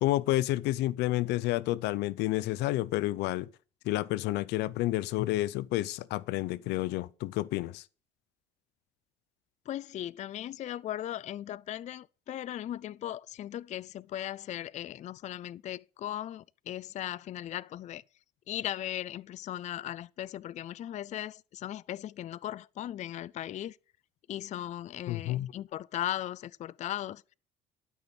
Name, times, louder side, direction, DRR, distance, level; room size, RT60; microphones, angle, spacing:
voice 1, 0.0-3.5 3.8-7.8 25.1-25.5, left 16 dB, 90° left, 0.6 m, -30 dB
voice 2, 9.7-18.0 18.5-23.8 24.3-27.3, left 12 dB, 45° left, 0.4 m, -38 dB
12.0 x 6.1 x 5.3 m
cardioid pair, 110°, 17 cm